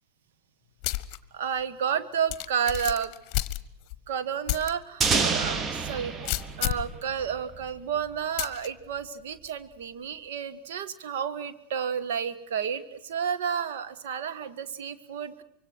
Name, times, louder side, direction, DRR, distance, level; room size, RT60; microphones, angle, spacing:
sound 1, 0.8-1.2 1.6-1.7 2.3-4.0 4.5-4.7 5.2-5.3 6.3-6.9 8.4-8.7, left 17 dB, 40° left, 1.1 m, -30 dB
voice 1, 1.3-3.1 4.1-15.4, right 7 dB, 55° right, 11 dB, 1.6 m, -31 dB
sound 2, 5.0-7.8, right 5 dB, 20° right, 1.3 m, -28 dB
25.0 x 24.0 x 6.3 m, 0.81 s
figure-of-eight pair, 90°, 0 cm